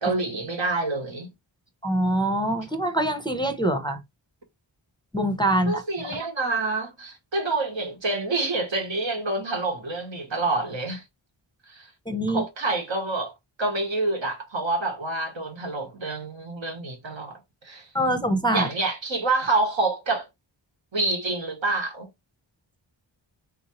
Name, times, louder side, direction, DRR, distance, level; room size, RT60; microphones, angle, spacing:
voice 1, 0.0-1.3 5.7-11.0 11.7-11.9 12.3-13.3 13.6-17.9 18.5-20.3 20.9-22.1, right 2 dB, 70° right, 1.1 m, -27 dB
voice 2, 1.8-4.0 5.1-5.8 12.1-12.4 17.9-18.7, right 1 dB, 10° left, 0.6 m, -24 dB
3.4 x 2.8 x 2.9 m
wide cardioid pair, 60°, 47 cm